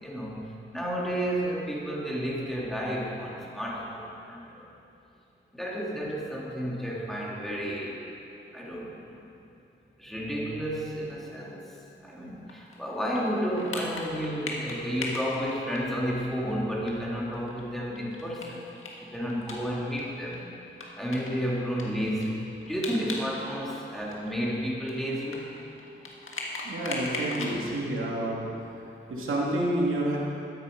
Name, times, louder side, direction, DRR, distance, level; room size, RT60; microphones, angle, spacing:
voice 1, 0.0-4.7 5.5-8.0 8.5-9.3 10.0-18.7 19.1-20.5 21.0-25.5, equal, ahead, -4 dB, 2.9 m, -32 dB
sound 1, 12.5-16.3 16.6-16.7 16.9-17.0 17.3-20.0 20.3-20.4 20.8-23.3 23.6-27.6, left 3 dB, 75° left, 1.7 m, -38 dB
voice 2, 26.6-28.5 29.1-30.2, right 1 dB, 75° right, -4 dB, 2.5 m, -28 dB
12.5 x 9.2 x 5.3 m, 2.8 s
cardioid pair, 55°, 21 cm